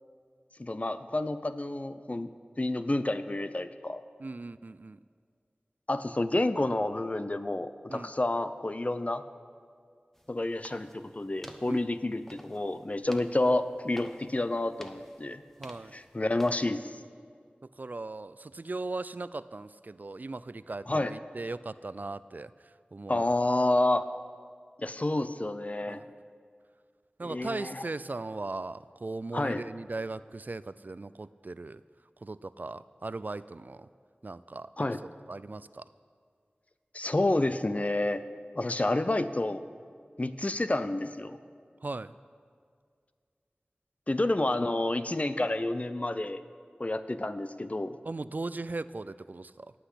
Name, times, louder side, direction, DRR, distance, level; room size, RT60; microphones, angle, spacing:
voice 1, 0.6-2.3 2.6-4.0 5.9-9.2 10.3-15.4 15.9-16.9 20.9-21.1 23.1-24.1 24.8-26.0 27.2-27.8 29.3-29.6 34.8-35.0 36.9-38.2 38.6-39.6 40.2-41.4 44.1-46.4 46.8-48.0, left 2 dB, 40° left, 11 dB, 0.6 m, -29 dB
voice 2, 4.2-5.0 7.9-8.1 11.7-11.8 15.6-15.9 17.8-23.2 25.9-26.1 27.2-31.8 32.2-33.9 34.2-34.7 35.3-35.8 41.8-42.1 48.0-49.7, right 3 dB, 55° right, 16 dB, 0.3 m, -38 dB
sound 1, 10.1-16.6, equal, 10° left, 1.0 m, -51 dB
18.0 x 6.0 x 8.4 m, 2.1 s
wide cardioid pair, 50°, 4 cm